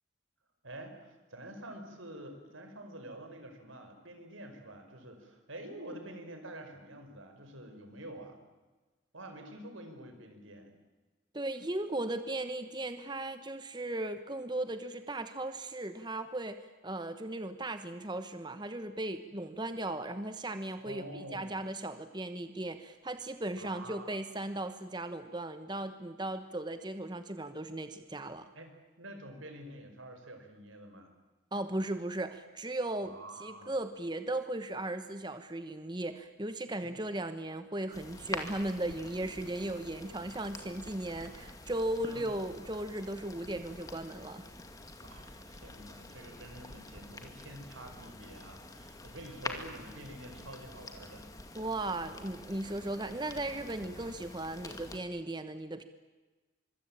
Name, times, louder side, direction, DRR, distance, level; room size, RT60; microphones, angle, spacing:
voice 1, 0.6-8.4 9.1-10.8 20.8-21.7 23.6-24.2 28.5-28.7 29.0-31.1 33.0-33.7 36.8-37.2 42.0-42.2 45.0-51.4, right 1 dB, 85° right, 6 dB, 5.1 m, -48 dB
voice 2, 11.3-28.5 31.5-44.5 51.5-55.8, right 1 dB, 20° right, 9 dB, 1.1 m, -37 dB
sound 1, 37.9-55.0, left 2 dB, 20° left, 2.3 m, -46 dB
25.0 x 24.0 x 8.8 m, 1.2 s
head